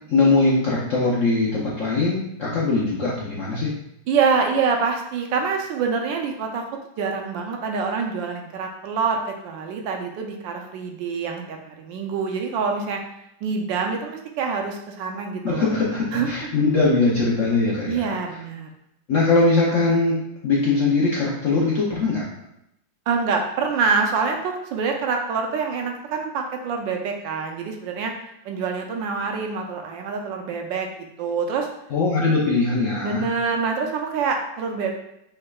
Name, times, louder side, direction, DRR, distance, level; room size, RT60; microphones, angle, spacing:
voice 1, 0.1-3.7 15.4-18.0 19.1-22.3 31.9-33.3, left 3 dB, 65° left, -5 dB, 0.8 m, -21 dB
voice 2, 4.1-6.6 7.0-13.0 13.4-15.7 16.1-16.3 17.9-18.7 23.1-28.1 28.4-30.9 31.2-31.7 33.0-34.9, right 5 dB, 75° right, 3 dB, 1.3 m, -25 dB
5.5 x 3.6 x 2.3 m, 0.80 s
omnidirectional pair, 2.1 m